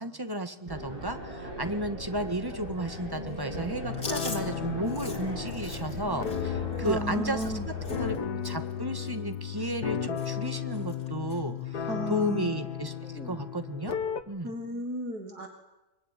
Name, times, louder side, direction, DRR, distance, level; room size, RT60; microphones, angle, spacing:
voice 1, 0.0-8.1 8.4-12.9 13.2-14.0 14.3-14.5, right 1 dB, 15° right, 8 dB, 1.7 m, -33 dB
sound 1, 0.7-8.2, equal, 35° right, 8.3 m, -39 dB
sound 2, 3.8-14.2, left 8 dB, 85° left, 1.9 m, -35 dB
Chewing mastication, 3.9-8.2 8.4-8.7 9.0-9.9 10.2-10.5 10.7-11.4 11.8-12.0 13.0-13.4, left 3 dB, 50° left, 3.1 m, -43 dB
voice 2, 6.8-7.7 11.9-12.5 14.4-15.5, right 1 dB, 75° right, 4 dB, 2.5 m, -33 dB
24.5 x 23.5 x 10.0 m, 1.0 s
omnidirectional pair, 1.7 m